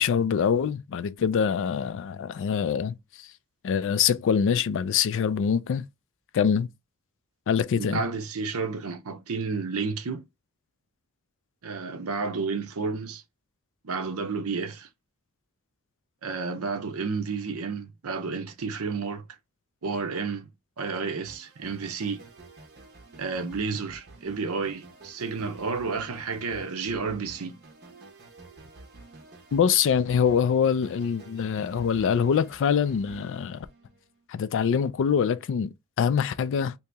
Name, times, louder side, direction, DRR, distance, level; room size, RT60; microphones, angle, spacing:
voice 1, 0.0-3.3 3.6-5.8 6.3-6.7 7.5-8.0 29.5-33.7 34.3-35.7 36.0-36.7, left 7 dB, 60° left, 0.3 m, -24 dB
voice 2, 7.8-10.2 11.6-13.2 13.8-14.9 16.2-19.2 19.8-20.5 20.8-22.2 23.2-27.6, right 4 dB, 70° right, 0.6 m, -31 dB
sound 1, 21.2-34.2, right 2 dB, 50° right, 1.0 m, -50 dB
2.9 x 2.8 x 3.4 m
head